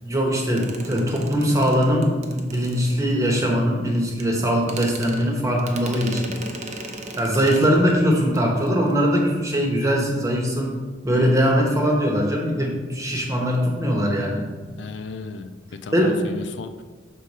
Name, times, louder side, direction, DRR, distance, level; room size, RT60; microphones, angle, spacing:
voice 1, 0.0-6.3 7.2-10.8 11.0-14.5 15.9-16.2, equal, 15° right, 0 dB, 1.1 m, -21 dB
sound 1, 0.6-3.3 4.2-4.3 4.6-8.0 8.3-8.4 8.7-8.9, right 2 dB, 40° right, 0.7 m, -37 dB
voice 2, 14.8-16.8, left 4 dB, 85° left, 10 dB, 0.4 m, -36 dB
6.5 x 3.9 x 5.4 m, 1.3 s
head